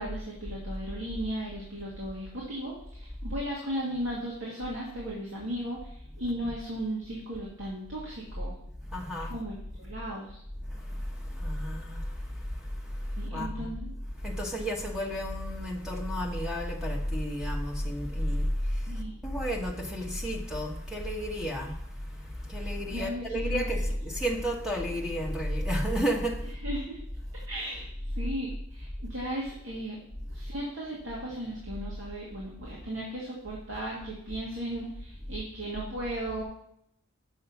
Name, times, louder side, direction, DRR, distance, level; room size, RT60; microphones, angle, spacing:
voice 1, 0.0-8.5 9.3-10.4 13.2-13.9 18.9-19.2 22.6-23.7 26.6-27.0 27.5-27.9 28.2-30.0 30.3-36.4, right 1 dB, 75° right, 2.2 m, -36 dB
voice 2, 8.9-9.3 10.6-13.7 14.2-26.5, equal, 5° right, 1.1 m, -32 dB
8.0 x 5.9 x 5.8 m
head